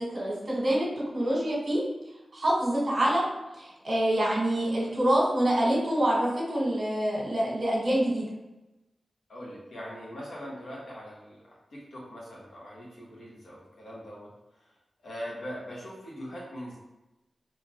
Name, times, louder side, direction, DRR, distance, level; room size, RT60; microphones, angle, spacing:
voice 1, 0.1-0.9 1.1-1.8 2.3-3.2 3.5-8.3, right 1 dB, 45° right, -4 dB, 1.4 m, -26 dB
voice 2, 9.3-14.3 14.6-14.7 15.0-16.8, equal, 85° left, -5 dB, 1.3 m, -41 dB
4.1 x 2.9 x 3.0 m, 1.0 s
wide cardioid pair, 110°, 0 cm